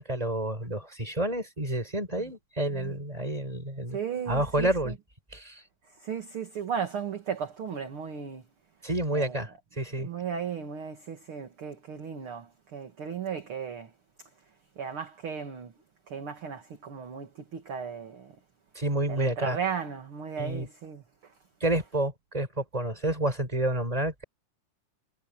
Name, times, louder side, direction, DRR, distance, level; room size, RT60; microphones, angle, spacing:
voice 1, 0.0-4.0 4.3-5.0 5.3-5.6 8.8-10.1 18.7-19.6 20.4-20.7 21.6-24.2, right 1 dB, 10° right, 5.6 m, -29 dB
voice 2, 3.9-4.7 6.0-8.4 9.1-9.4 10.0-13.9 14.8-15.7 16.1-18.3 19.1-21.0, right 7 dB, 45° right, 2.6 m, -35 dB
omnidirectional pair, 3.7 m